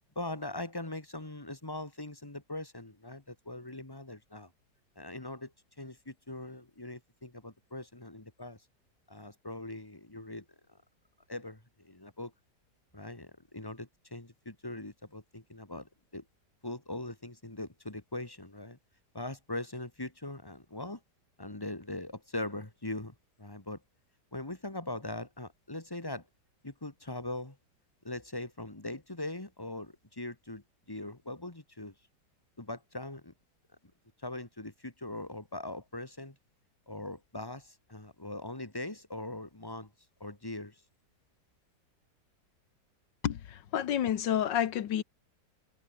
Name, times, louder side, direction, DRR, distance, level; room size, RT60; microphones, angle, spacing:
voice 1, 0.2-4.5 5.0-8.7 9.1-10.8 11.3-12.3 12.9-16.3 16.6-18.8 19.1-21.0 21.4-23.8 24.3-26.3 26.6-27.6 28.0-31.9 32.6-33.3 34.2-36.4 36.9-39.9 40.2-40.8, left 2 dB, 10° left, 2.2 m, -41 dB
voice 2, 43.2-45.0, left 10 dB, 80° left, 1.8 m, -29 dB
omnidirectional pair, 1.9 m